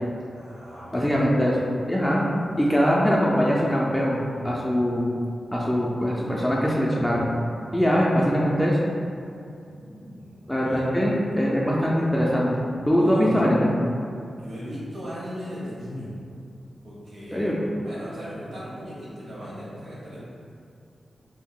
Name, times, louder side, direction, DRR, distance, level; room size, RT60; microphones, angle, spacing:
voice 1, 0.3-1.2 9.7-11.0 13.0-13.4 14.4-16.2 16.8-20.2, equal, 75° right, -8 dB, 1.1 m, -38 dB
voice 2, 0.9-1.6 1.9-2.2 2.6-5.1 5.5-7.3 7.7-8.8 10.5-12.5 12.9-13.7 17.3-17.6, equal, 10° left, -5 dB, 0.3 m, -22 dB
2.7 x 2.2 x 3.7 m, 2.5 s
wide cardioid pair, 85°, 0 cm